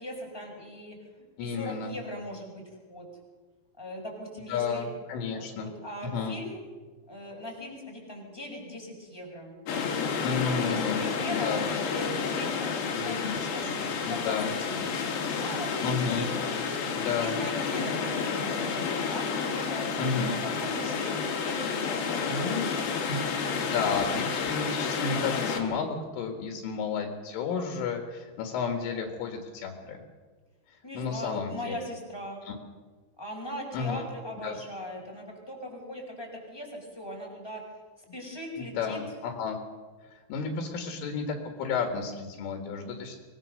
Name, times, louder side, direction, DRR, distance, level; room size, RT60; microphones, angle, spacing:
voice 1, 0.0-3.1 3.8-4.9 5.3-6.6 7.1-9.6 10.5-13.7 14.0-14.3 14.6-14.9 15.4-16.5 17.0-19.9 20.3-22.8 30.8-32.4 33.2-37.6 38.0-39.0, left 1 dB, 5° left, -1 dB, 4.7 m, -40 dB
voice 2, 1.4-1.9 4.5-5.7 6.0-6.4 10.2-11.0 11.3-11.7 12.9-14.5 15.8-16.3 17.0-17.4 20.0-20.4 22.3-22.7 23.1-30.0 30.7-31.8 32.5-32.6 33.7-34.1 34.4-34.6 38.6-39.6 40.1-43.2, left 5 dB, 75° left, 3 dB, 4.3 m, -32 dB
sound 1, 9.7-25.6, left 5 dB, 55° left, 3.7 m, -30 dB
24.5 x 19.5 x 6.6 m, 1.4 s
omnidirectional pair, 5.7 m